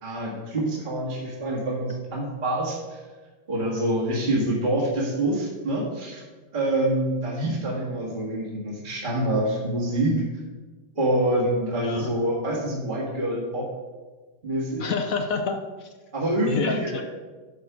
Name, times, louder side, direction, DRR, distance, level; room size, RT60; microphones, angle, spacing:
voice 1, 0.0-3.0 3.5-6.2 6.5-10.2 11.0-13.7 14.4-14.9 16.1-17.0, right 1 dB, 25° right, -4 dB, 2.0 m, -26 dB
voice 2, 14.8-15.9 16.5-17.0, left 5 dB, 65° left, 6 dB, 0.9 m, -28 dB
10.5 x 4.7 x 6.2 m, 1.3 s
omnidirectional pair, 2.0 m